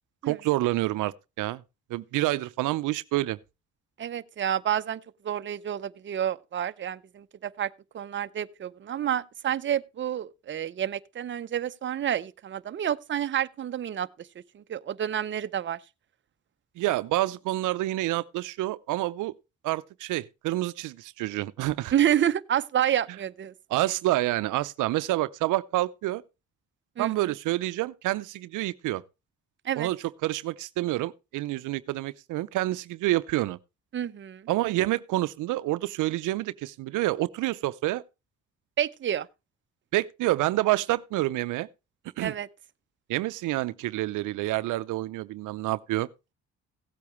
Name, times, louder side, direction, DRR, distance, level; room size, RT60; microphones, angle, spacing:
voice 1, 0.2-1.6 1.9-3.4 16.8-19.3 19.6-21.9 23.7-26.2 27.0-29.0 29.7-30.0 30.2-33.6 34.5-38.0 39.9-41.7 42.2-42.3 43.1-46.3, right 17 dB, 85° right, 0.6 m, -28 dB
voice 2, 4.0-14.3 14.5-15.8 21.9-23.5 27.0-27.3 29.6-29.9 33.9-34.5 38.8-39.3 42.2-42.5, right 10 dB, 40° right, 0.7 m, -29 dB
16.5 x 8.5 x 3.1 m
cardioid pair, 90°, 30 cm